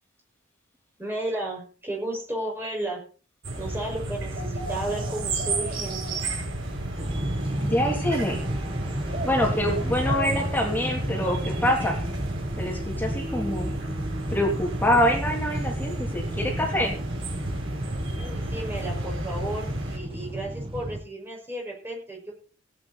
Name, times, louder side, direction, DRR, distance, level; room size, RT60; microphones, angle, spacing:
voice 1, 1.0-3.0 3.6-6.2 18.2-22.3, right 1 dB, 10° right, -2 dB, 5.9 m, -33 dB
sound 1, 3.4-20.0, right 2 dB, 85° right, 5.0 m, -32 dB
sound 2, 6.9-21.0, right 1 dB, 25° right, 2.1 m, -32 dB
voice 2, 7.6-8.4 9.2-12.0 12.6-13.7 14.3-16.9, left 1 dB, 10° left, 0 dB, 3.3 m, -25 dB
17.0 x 9.6 x 4.3 m, 0.38 s
head